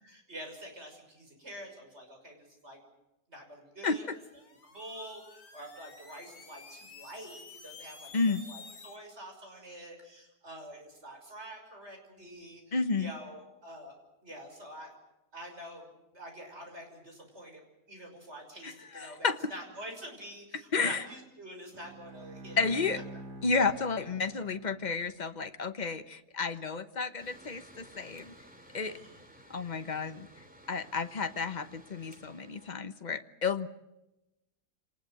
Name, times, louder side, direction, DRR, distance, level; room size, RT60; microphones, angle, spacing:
voice 1, 0.0-2.8 3.3-4.1 4.6-13.9 14.2-14.9 15.3-15.9 16.1-17.6 17.9-22.6 28.8-29.2, equal, 45° right, 3 dB, 6.2 m, -46 dB
voice 2, 3.8-4.2 8.1-8.4 12.7-13.1 18.6-19.4 20.7-21.0 22.6-23.0 23.4-28.3 28.7-29.0 29.5-30.3 30.7-33.7, left 4 dB, 30° left, 10 dB, 1.1 m, -31 dB
sound 1, 4.1-9.0, left 4 dB, 70° left, 2.5 m, -51 dB
Bowed string instrument, 21.7-25.3, right 2 dB, 85° right, 2.2 m, -47 dB
Mechanical fan, 27.2-32.7, right 1 dB, 5° right, 2.9 m, -55 dB
26.5 x 19.5 x 7.8 m, 0.95 s
omnidirectional pair, 1.7 m